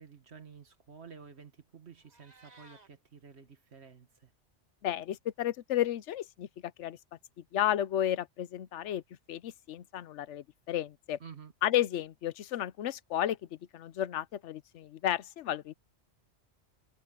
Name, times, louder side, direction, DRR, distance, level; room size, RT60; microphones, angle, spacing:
voice 1, 0.0-4.3 11.2-11.5, right 6 dB, 65° right, 1.9 m, -51 dB
Meow, 1.9-2.9, right 2 dB, 35° right, 2.4 m, -58 dB
voice 2, 4.8-7.0 7.5-9.0 9.3-11.2 11.6-13.4 13.7-15.7, left 11 dB, 85° left, 1.0 m, -32 dB
omnidirectional pair, 1.2 m